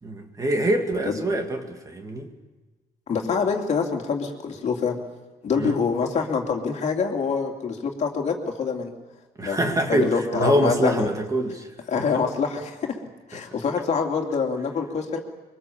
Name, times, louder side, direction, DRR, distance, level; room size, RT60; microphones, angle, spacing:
voice 1, 0.0-2.3 5.6-5.8 9.4-11.7 12.0-12.1 13.3-13.4, right 1 dB, 20° right, 4 dB, 2.2 m, -25 dB
voice 2, 3.1-5.0 5.4-8.9 9.4-11.1 11.9-13.0 13.3-15.2, left 5 dB, 40° left, 2 dB, 2.8 m, -25 dB
24.5 x 23.5 x 7.2 m, 1.2 s
cardioid pair, 150°, 17 cm